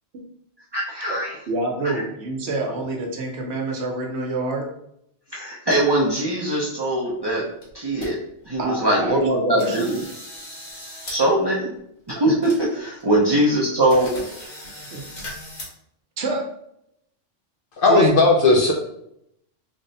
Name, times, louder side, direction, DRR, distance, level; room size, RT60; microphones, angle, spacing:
voice 1, 0.7-1.4 5.3-7.5 7.7-8.2 8.5-10.0 11.1-11.8 12.1-14.1, right 1 dB, 35° right, -4 dB, 0.4 m, -21 dB
voice 2, 1.5-4.7 8.6-9.9 13.3-13.4 14.9-15.0 16.2-16.4 17.9-18.1, right 2 dB, 65° right, 1 dB, 1.0 m, -27 dB
sound 1, 7.3-7.4 7.6-8.1 8.5-8.6 9.1-9.3 9.6-11.2 11.5-11.6 12.1-12.2 12.4-13.0 13.4-13.5 13.9-15.6, left 1 dB, 90° left, 1.7 m, -38 dB
voice 3, 17.8-18.7, left 2 dB, 60° left, 0 dB, 0.6 m, -15 dB
3.4 x 2.1 x 3.9 m, 0.75 s
omnidirectional pair, 1.2 m